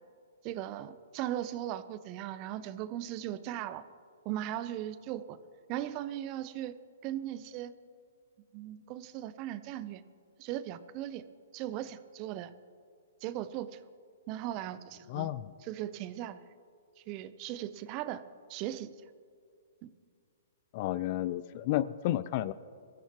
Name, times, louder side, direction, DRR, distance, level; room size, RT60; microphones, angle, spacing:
voice 1, 0.4-3.8 4.2-5.4 5.7-6.7 7.0-7.7 8.5-10.0 10.4-11.2 11.5-12.5 13.2-13.8 14.3-15.3 15.6-16.4 17.1-18.2 18.5-18.9 19.8-19.9, right 12 dB, 35° right, 14 dB, 0.7 m, -38 dB
voice 2, 15.1-15.5 20.7-22.5, left 14 dB, 45° left, 18 dB, 0.5 m, -31 dB
22.0 x 15.0 x 3.0 m, 2.2 s
hypercardioid pair, 130°, 0 cm